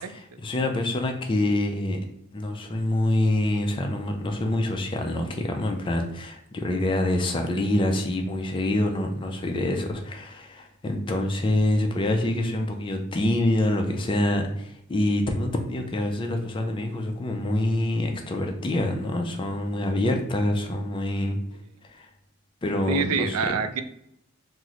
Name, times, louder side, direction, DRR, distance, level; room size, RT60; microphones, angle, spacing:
voice 1, 0.1-2.0 2.3-21.4 21.9-22.1 22.6-23.3, left 1 dB, 20° left, 3 dB, 0.4 m, -26 dB
voice 2, 22.9-23.8, right 6 dB, 85° right, 9 dB, 0.3 m, -26 dB
3.0 x 2.0 x 3.6 m, 0.75 s
head